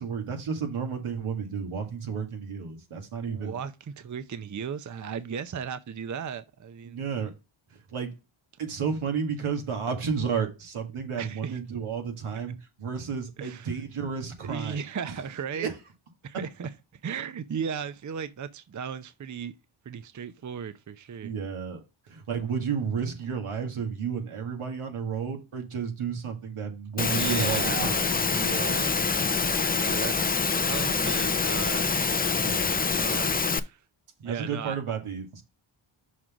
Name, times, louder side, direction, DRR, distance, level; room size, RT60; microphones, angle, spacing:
voice 1, 0.0-3.6 6.9-7.3 7.9-8.1 8.6-14.8 15.5-15.7 21.2-28.1 28.8-28.9 29.7-29.9 32.4-32.8 34.2-35.4, right 6 dB, 85° right, 2.0 m, -32 dB
voice 2, 3.3-7.0 11.2-11.6 13.4-13.7 14.4-15.7 16.2-16.7 17.0-19.6 19.8-21.3 27.1-29.0 29.7-31.9 33.0-33.8 34.2-34.8, right 7 dB, 35° right, 0.6 m, -36 dB
Engine / Mechanisms, 27.0-33.6, left 5 dB, 20° left, 0.5 m, -26 dB
6.2 x 3.8 x 6.0 m
wide cardioid pair, 95°, 50 cm